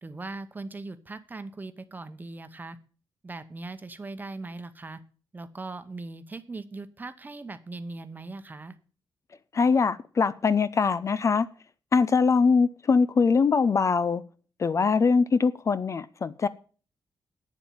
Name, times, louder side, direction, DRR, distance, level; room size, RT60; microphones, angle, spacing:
voice 1, 0.0-2.8 3.2-5.0 5.3-8.8, right 3 dB, 20° right, 1.0 m, -39 dB
voice 2, 9.5-11.5 11.9-14.2 14.6-16.5, left 5 dB, 35° left, 0.5 m, -22 dB
8.9 x 7.2 x 8.7 m
wide cardioid pair, 140°, 8 cm